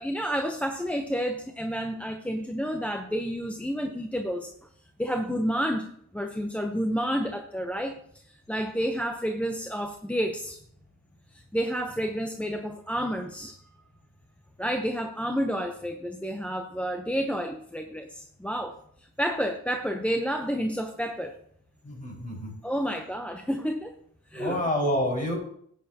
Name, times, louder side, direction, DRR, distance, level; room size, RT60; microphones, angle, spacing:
voice 1, 0.0-4.5 5.0-5.9 6.1-8.0 8.3-10.6 11.3-13.6 14.6-18.8 19.2-21.4 22.6-23.9 24.3-24.6, equal, 5° left, 5 dB, 0.8 m, -30 dB
voice 2, 21.8-22.5 24.3-25.4, equal, 25° left, -1 dB, 5.0 m, -28 dB
13.0 x 9.2 x 2.9 m, 0.66 s
cardioid pair, 90°, 30 cm